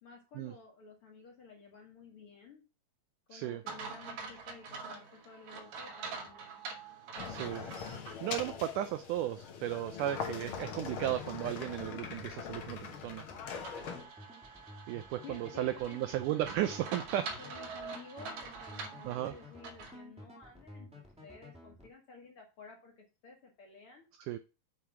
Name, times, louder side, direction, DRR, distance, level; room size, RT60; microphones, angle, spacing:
voice 1, 0.0-2.6 3.3-6.6 13.6-14.0 15.2-16.0 17.4-24.1, left 4 dB, 55° left, 1 dB, 1.6 m, -53 dB
voice 2, 3.3-3.6 7.3-7.7 8.2-13.2 14.9-17.3 19.0-19.3 24.2-24.4, right 13 dB, 85° right, 9 dB, 1.8 m, -35 dB
sound 1, 3.7-8.2 8.6-8.7 13.6-20.0, right 4 dB, 60° right, 2.3 m, -45 dB
sound 2, 7.2-14.1, left 6 dB, 80° left, 1.2 m, -42 dB
sound 3, 11.2-21.9, left 1 dB, 5° right, 0.9 m, -53 dB
7.4 x 4.8 x 5.8 m, 0.30 s
omnidirectional pair, 4.2 m